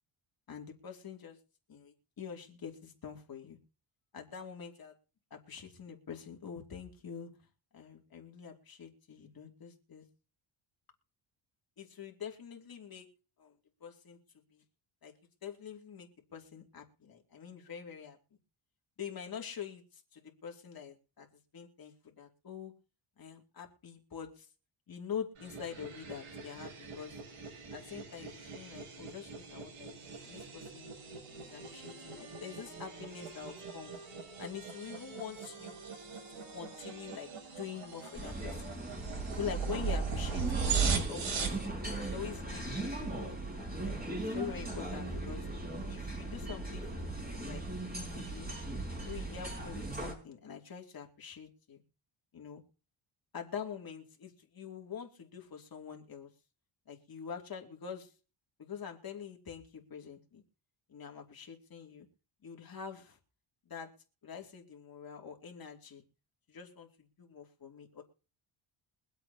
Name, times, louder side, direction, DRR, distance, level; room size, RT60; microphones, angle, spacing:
voice 1, 0.5-1.4 1.7-3.6 4.1-4.9 5.3-7.3 7.7-10.1 11.8-13.1 13.4-13.5 13.8-14.2 14.5-14.6 15.0-15.1 15.4-18.2 19.0-22.7 23.2-24.5 24.9-27.2 27.7-29.9 30.2-30.9 31.4-33.9 34.4-35.8 36.3-37.3 37.6-38.8 39.1-41.6 42.1-43.4 43.8-45.5 45.9-47.0 47.4-47.6 48.1-48.5 49.0-51.8 52.3-52.6 53.3-56.3 56.9-58.1 58.6-60.4 60.9-62.1 62.4-63.2 63.7-63.9 64.2-66.0 66.5-68.0, left 7 dB, 45° left, 2 dB, 2.6 m, -45 dB
sound 1, 25.4-41.7, right 5 dB, 75° right, 6.6 m, -39 dB
sound 2, 31.2-38.7, right 2 dB, 40° right, 6.0 m, -56 dB
sound 3, 38.1-50.1, right 2 dB, 20° right, 5.3 m, -39 dB
23.5 x 8.1 x 2.8 m, 0.36 s
cardioid pair, 105°, 50 cm